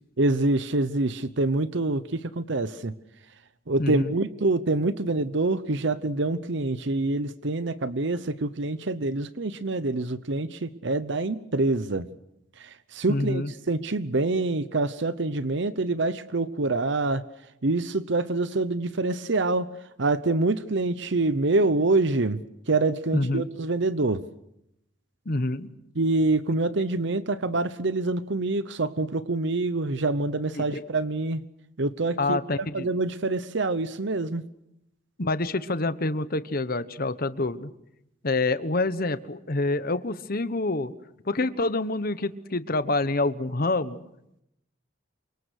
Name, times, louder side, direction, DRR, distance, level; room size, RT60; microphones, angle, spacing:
voice 1, 0.2-2.9 3.7-12.1 12.6-17.2 17.6-19.7 20.0-22.4 22.7-24.2 26.0-31.4 31.8-34.4, right 2 dB, 60° right, 14 dB, 0.9 m, -26 dB
voice 2, 3.8-4.1 13.1-13.5 23.1-23.5 25.3-25.7 30.5-30.8 32.2-32.9 35.2-37.7 38.2-40.9 41.2-44.0, left 2 dB, 50° left, 13 dB, 1.2 m, -27 dB
28.0 x 25.0 x 6.5 m, 0.81 s
head